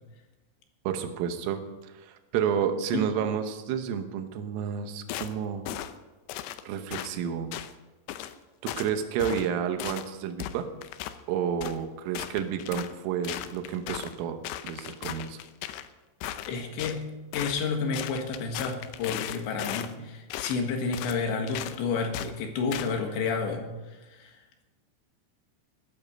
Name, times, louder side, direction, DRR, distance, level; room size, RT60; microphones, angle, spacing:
voice 1, 0.9-5.7 6.6-7.5 8.6-10.7 11.3-15.4, right 8 dB, 85° right, 7 dB, 3.7 m, -30 dB
sound 1, 5.1-5.3 5.7-5.9 6.3-6.6 6.9-7.1 7.5-7.7 8.1-8.3 8.7-8.9 9.2-9.5 9.8-10.1 10.4-11.2 11.6-11.8 12.1-12.9 13.2-14.2 14.4-15.9 16.2-17.0 17.3-17.7 17.9-19.9 20.3-20.6 20.9-21.2 21.5-21.8 22.1-22.3 22.7-22.9, left 12 dB, 90° left, 2.3 m, -36 dB
voice 2, 16.5-24.4, left 4 dB, 70° left, 3 dB, 3.8 m, -31 dB
16.5 x 12.0 x 5.4 m, 1.1 s
omnidirectional pair, 5.7 m